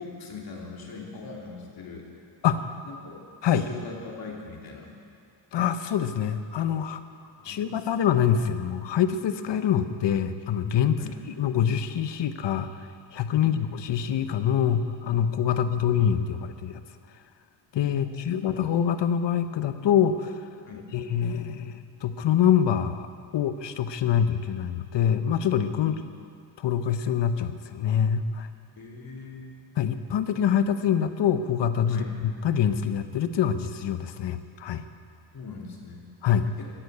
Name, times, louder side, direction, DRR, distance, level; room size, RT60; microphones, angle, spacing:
voice 1, 0.0-2.1 2.8-3.2 3.5-4.9 7.4-8.1 11.0-11.1 13.4-13.6 15.5-15.6 18.0-18.7 20.6-20.9 25.8-26.0 28.8-29.6 31.9-32.1 35.3-36.1 36.5-36.7, left 4 dB, 50° left, -1 dB, 2.9 m, -41 dB
voice 2, 5.5-7.0 7.4-11.0 11.4-12.7 13.1-16.8 17.7-20.4 20.9-23.1 23.3-26.0 26.6-28.5 29.8-32.0 32.4-34.8 36.2-36.5, left 9 dB, 70° left, 10 dB, 1.0 m, -25 dB
15.5 x 10.5 x 8.0 m, 2.4 s
cardioid pair, 110°, 45 cm